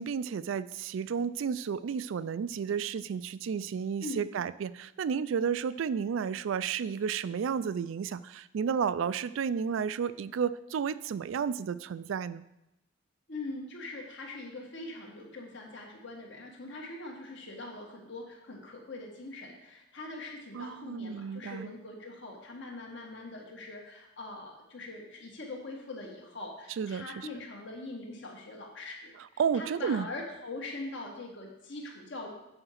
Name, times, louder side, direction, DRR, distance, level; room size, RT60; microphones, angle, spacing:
voice 1, 0.0-12.4 20.5-21.7 26.8-27.3 29.4-30.1, right 7 dB, 75° right, 16 dB, 0.3 m, -32 dB
voice 2, 13.3-29.2 29.5-32.3, left 2 dB, 65° left, 0 dB, 1.7 m, -42 dB
7.8 x 5.0 x 5.8 m, 0.87 s
head